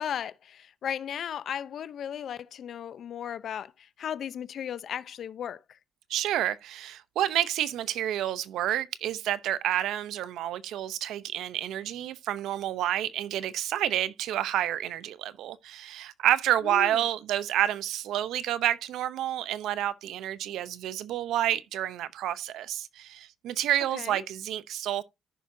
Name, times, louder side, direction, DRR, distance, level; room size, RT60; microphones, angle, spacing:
voice 1, 0.0-5.8 16.6-17.0 23.9-24.2, left 9 dB, 65° left, 0.7 m, -36 dB
voice 2, 6.1-25.0, right 12 dB, 85° right, 0.7 m, -29 dB
14.0 x 6.1 x 2.7 m
cardioid pair, 90°, 0 cm